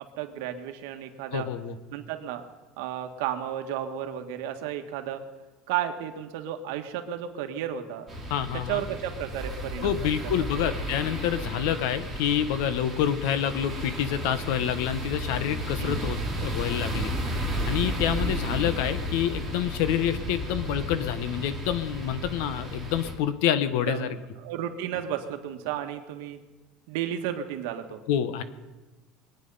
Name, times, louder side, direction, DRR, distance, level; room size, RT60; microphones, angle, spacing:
voice 1, 0.2-1.5 1.9-2.4 2.8-5.2 5.7-8.1 8.7-10.2 15.8-16.1 18.2-18.7 23.9-26.4 26.9-28.0, right 10 dB, 80° right, 6 dB, 1.5 m, -33 dB
voice 2, 1.3-1.7 8.3-8.8 9.8-17.1 17.6-24.2 28.1-28.4, left 10 dB, 70° left, 13 dB, 1.1 m, -27 dB
sound 1, 8.1-23.1, equal, ahead, 3.4 m, -33 dB
22.5 x 9.1 x 5.6 m, 1.2 s
cardioid pair, 170°, 0 cm